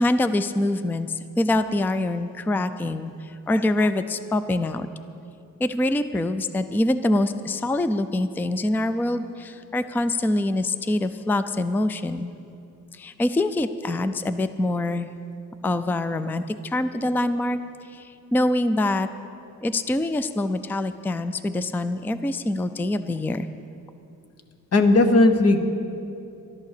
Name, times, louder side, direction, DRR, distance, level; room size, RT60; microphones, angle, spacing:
voice 1, 0.0-4.9 5.6-12.3 12.9-15.1 15.6-17.6 17.9-19.1 19.6-23.5, left 1 dB, 5° left, 12 dB, 0.3 m, -25 dB
voice 2, 24.7-25.6, left 2 dB, 45° left, 7 dB, 1.0 m, -16 dB
12.0 x 11.0 x 6.6 m, 2.7 s
wide cardioid pair, 140°, 34 cm